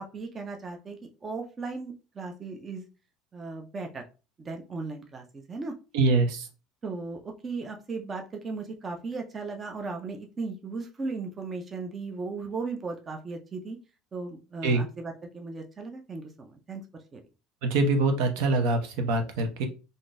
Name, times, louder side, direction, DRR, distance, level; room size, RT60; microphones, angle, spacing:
voice 1, 0.0-2.8 3.3-4.0 4.4-5.7 6.8-13.8 14.1-16.8 17.1-17.2, right 4 dB, 25° right, 3 dB, 0.4 m, -36 dB
voice 2, 5.9-6.5 14.6-14.8 17.6-19.7, right 3 dB, 75° right, 5 dB, 0.7 m, -24 dB
3.6 x 2.5 x 2.5 m, 0.32 s
cardioid pair, 145°, 0 cm